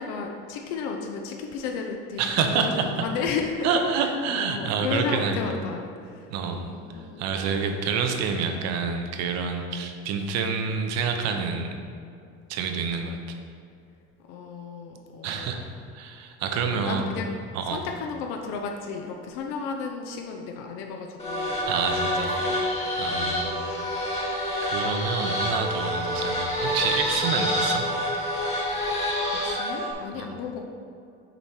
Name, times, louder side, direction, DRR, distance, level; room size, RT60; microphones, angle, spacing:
voice 1, 0.0-7.2 14.3-15.6 16.5-17.3 17.7-21.6 22.1-22.6 23.0-23.4 29.3-30.6, left 5 dB, 85° left, 2 dB, 0.7 m, -33 dB
voice 2, 2.2-2.9 3.6-5.4 6.3-6.7 7.2-11.7 12.5-13.4 15.2-15.6 15.9-17.1 17.5-17.8 21.7-22.3 23.0-23.6 24.1-24.3 24.6-27.9 30.1-30.2, right 5 dB, 60° right, 5 dB, 0.8 m, -28 dB
sound 1, 21.2-29.9, equal, 20° left, 1.3 m, -27 dB
6.9 x 4.7 x 4.4 m, 2.5 s
cardioid pair, 165°, 30 cm